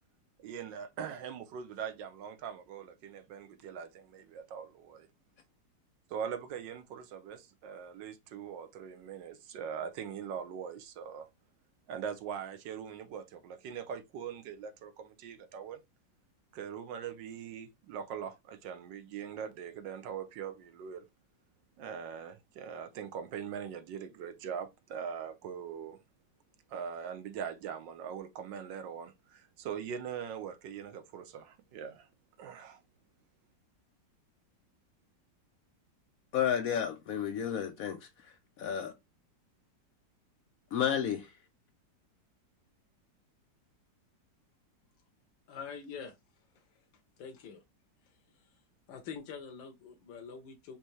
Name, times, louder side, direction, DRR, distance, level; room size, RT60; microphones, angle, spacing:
voice 1, 0.4-5.1 6.1-11.3 11.9-15.8 16.5-21.1 21.8-26.0 26.7-32.1 32.4-32.8, right 7 dB, 75° right, 1.4 m, -41 dB
voice 2, 36.3-38.9 40.7-41.3, left 8 dB, 70° left, 0.8 m, -32 dB
voice 3, 45.5-46.1 46.5-46.6 47.2-47.6 48.1-48.5 48.9-50.8, left 6 dB, 90° left, 1.4 m, -45 dB
5.4 x 2.9 x 3.1 m
omnidirectional pair, 2.0 m